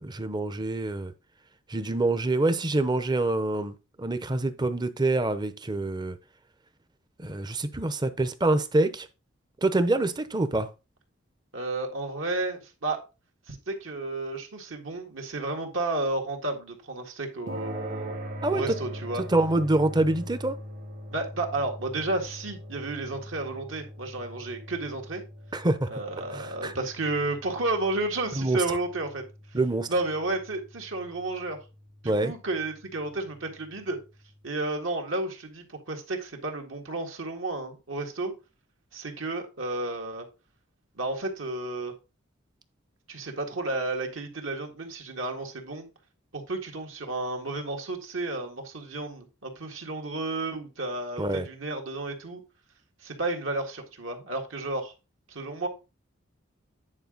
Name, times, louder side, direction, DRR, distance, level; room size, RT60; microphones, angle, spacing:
voice 1, 0.0-1.1 1.7-6.2 7.2-9.1 9.6-10.7 18.4-18.7 19.3-20.6 25.5-25.9 26.3-26.7 28.4-28.6 29.5-29.9 32.0-32.3 51.2-51.5, right 2 dB, 20° right, 0.7 m, -26 dB
voice 2, 11.5-13.0 13.5-18.1 18.5-19.2 21.1-25.2 25.9-29.2 29.9-31.6 32.0-34.0 34.4-38.3 38.9-40.3 41.0-41.9 43.1-45.9 46.3-52.4 53.0-54.9 55.3-55.7, right 2 dB, 70° right, 1.9 m, -32 dB
sound 1, 17.5-34.0, equal, 40° right, 1.3 m, -42 dB
9.7 x 4.9 x 3.9 m
head